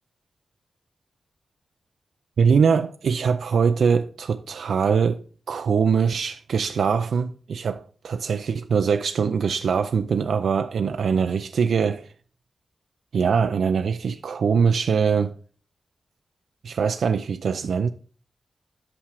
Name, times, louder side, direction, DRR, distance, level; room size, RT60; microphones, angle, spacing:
voice 1, 2.4-12.1 13.1-15.3 16.6-17.9, right 6 dB, 85° right, 0.4 m, -22 dB
8.7 x 5.8 x 4.8 m
wide cardioid pair, 165°, 0 cm